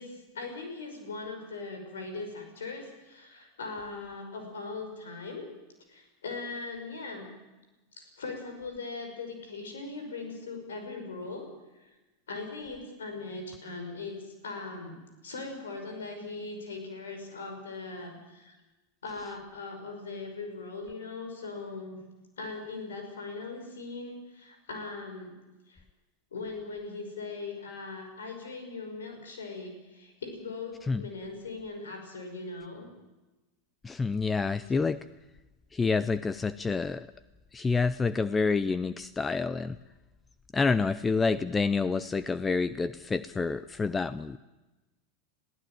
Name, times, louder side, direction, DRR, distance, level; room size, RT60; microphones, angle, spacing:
voice 1, 0.0-5.4 5.9-7.3 7.9-11.5 11.7-12.0 12.3-18.5 19.0-22.0 22.4-25.3 25.7-25.8 26.3-32.9, left 3 dB, 85° left, 4 dB, 5.6 m, -40 dB
voice 2, 33.8-35.0 35.7-37.1 37.5-39.8 40.5-44.4, left 4 dB, 15° left, 15 dB, 0.6 m, -28 dB
20.5 x 16.0 x 9.2 m, 1.1 s
hypercardioid pair, 100°, 0 cm